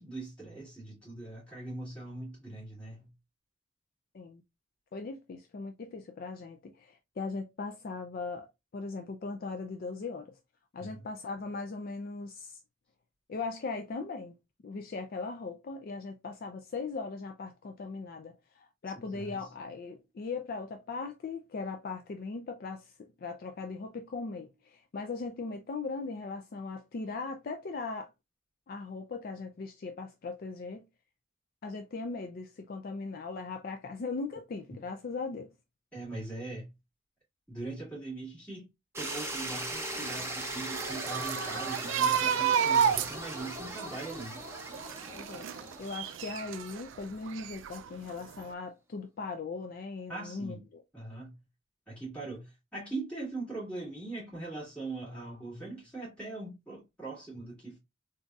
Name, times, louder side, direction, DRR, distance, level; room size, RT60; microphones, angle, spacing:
voice 1, 0.0-3.1 10.8-11.0 19.0-19.5 35.9-36.7 37.5-38.7 39.0-44.5 50.1-50.7 50.9-51.3 51.9-57.8, right 2 dB, 5° left, 2.1 m, -41 dB
voice 2, 4.9-8.5 8.7-10.4 10.7-12.6 13.3-14.3 14.6-28.1 28.7-30.8 31.6-35.5 45.1-45.5 45.8-50.8, left 4 dB, 45° left, 0.3 m, -39 dB
sound 1, 38.9-47.0, right 1 dB, 15° right, 0.7 m, -39 dB
sound 2, 40.0-46.8 47.3-48.1 48.4-48.5, right 8 dB, 65° right, 0.3 m, -31 dB
3.8 x 2.6 x 2.3 m
head